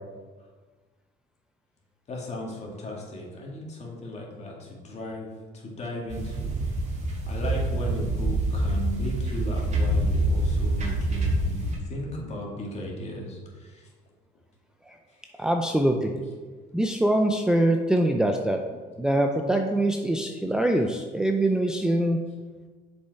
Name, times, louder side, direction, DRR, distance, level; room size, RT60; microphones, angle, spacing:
voice 1, 2.1-6.6 7.3-13.9 15.4-15.5 17.9-18.0 20.7-20.9, left 1 dB, 40° left, -2 dB, 2.1 m, -36 dB
sound 1, 6.1-11.7, right 1 dB, 45° right, 2.0 m, -26 dB
voice 2, 15.4-16.1 16.7-18.6 19.0-22.2, right 1 dB, 5° right, 3 dB, 0.5 m, -23 dB
6.9 x 5.2 x 4.7 m, 1.4 s
cardioid pair, 110°, 17 cm